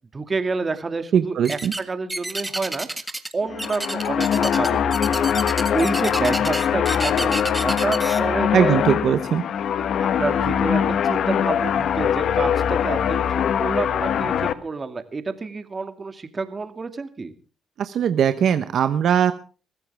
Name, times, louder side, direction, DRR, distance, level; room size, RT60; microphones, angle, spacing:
voice 1, 0.1-2.9 3.3-5.3 5.7-8.8 10.0-17.3, right 4 dB, 30° right, 9 dB, 2.3 m, -29 dB
voice 2, 1.1-1.7 8.5-9.4 17.8-19.3, right 8 dB, 65° right, 10 dB, 1.0 m, -20 dB
sound 1, 1.4-1.8 2.1-3.3 3.6-8.2, right 2 dB, 15° right, 1.7 m, -30 dB
sound 2, 3.4-14.5, left 8 dB, 65° left, 1.3 m, -22 dB
22.0 x 15.0 x 3.5 m, 0.37 s
cardioid pair, 90°, 0 cm